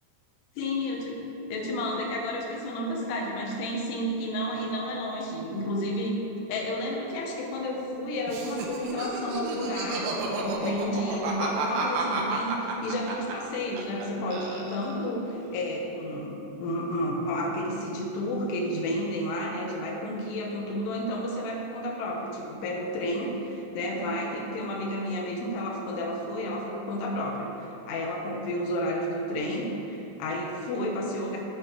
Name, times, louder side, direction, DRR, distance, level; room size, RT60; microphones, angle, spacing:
voice 1, 0.6-6.2 6.5-31.4, left 1 dB, 80° left, -1 dB, 3.0 m, -31 dB
Laughter, 8.3-14.1 14.3-15.1, right 3 dB, 80° right, 2.1 m, -31 dB
13.5 x 4.5 x 3.2 m, 3.0 s
omnidirectional pair, 5.0 m